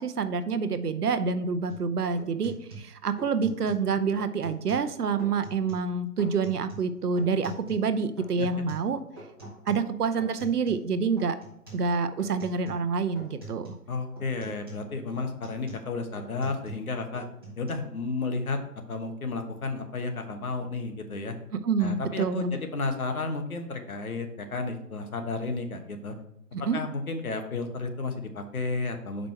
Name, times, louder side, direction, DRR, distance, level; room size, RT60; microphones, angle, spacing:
voice 1, 0.0-9.0 9.7-11.4 11.7-13.7 21.5-22.6 26.5-26.8, right 5 dB, 75° right, 11 dB, 0.8 m, -27 dB
sound 1, 1.7-1.9 2.2-3.9 4.2-4.9 5.2-5.9 6.2-7.9 8.2-10.9 11.2-11.9 12.2-12.9 13.2-13.9 14.2-16.9 17.1-17.7, right 2 dB, 15° right, 1.2 m, -45 dB
voice 2, 13.9-17.3 17.6-18.6 18.9-21.3 21.8-26.1 26.7-29.3, left 3 dB, 65° left, 5 dB, 1.3 m, -32 dB
6.2 x 5.1 x 4.5 m, 0.77 s
hypercardioid pair, 180°, 47 cm